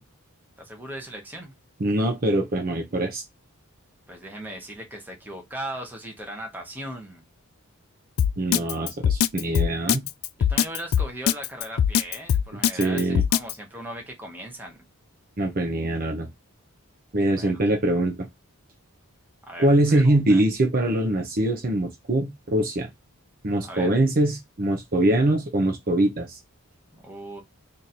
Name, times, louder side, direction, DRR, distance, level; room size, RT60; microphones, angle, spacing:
voice 1, 0.6-1.5 4.1-7.2 10.4-14.8 17.3-17.5 19.4-20.4 23.6-24.0 26.9-27.4, right 1 dB, 10° right, 1.0 m, -38 dB
voice 2, 1.8-3.2 8.4-10.1 12.7-13.2 15.4-16.3 17.1-18.3 19.6-22.9 23.4-26.4, right 1 dB, 40° right, 0.7 m, -23 dB
Drum kit, 8.2-13.5, left 9 dB, 70° left, 0.3 m, -21 dB
3.1 x 2.7 x 4.1 m
head